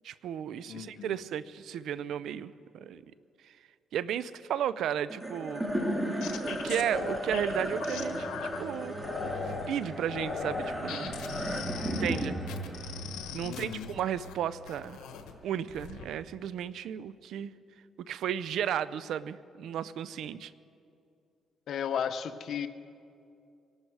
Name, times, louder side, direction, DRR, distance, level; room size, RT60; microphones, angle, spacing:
voice 1, 0.0-3.0 3.9-5.8 6.3-8.3 8.6-8.9 9.7-11.1 12.0-12.4 13.3-15.0 15.4-17.5 18.0-20.5, right 9 dB, 75° right, 17 dB, 0.5 m, -34 dB
voice 2, 0.7-1.2 13.4-13.9 21.7-22.7, left 8 dB, 70° left, 11 dB, 0.8 m, -34 dB
sound 1, 5.1-15.6, right 1 dB, 15° right, 2.4 m, -35 dB
sound 2, 5.7-8.6 9.0-9.7 10.1-14.3 14.7-15.3 15.7-16.1, left 8 dB, 90° left, 1.2 m, -40 dB
24.0 x 12.0 x 4.7 m, 2.5 s
cardioid pair, 90°, 0 cm